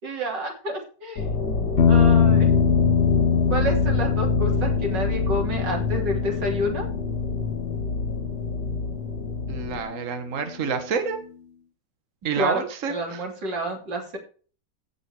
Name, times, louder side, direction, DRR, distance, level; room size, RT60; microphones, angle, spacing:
voice 1, 0.0-1.4 1.9-2.5 3.5-6.9 12.4-14.2, equal, 85° right, 2 dB, 3.8 m, -29 dB
sound 1, 1.2-9.8, left 4 dB, 70° left, 2.1 m, -27 dB
sound 2, 1.8-10.1, left 7 dB, 45° left, 1.2 m, -24 dB
voice 2, 9.5-11.2 12.2-13.2, right 5 dB, 50° right, 8 dB, 1.7 m, -28 dB
16.0 x 6.0 x 4.8 m, 0.40 s
omnidirectional pair, 1.9 m